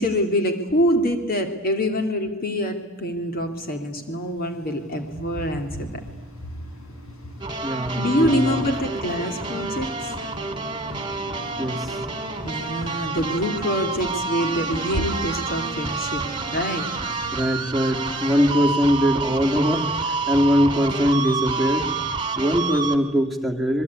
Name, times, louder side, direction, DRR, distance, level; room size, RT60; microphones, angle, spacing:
voice 1, 0.0-5.9 8.0-9.9 12.4-16.2 16.5-16.9, equal, 45° left, 5 dB, 2.8 m, -25 dB
sound 1, 3.0-22.0, equal, 85° left, 5.5 m, -44 dB
sound 2, 7.4-23.0, right 4 dB, 25° right, 2.6 m, -29 dB
voice 2, 7.6-8.6 11.6-12.0 14.4-14.5 17.3-21.9 22.4-23.8, equal, ahead, 0 dB, 2.8 m, -22 dB
27.5 x 21.5 x 9.7 m, 1.2 s
head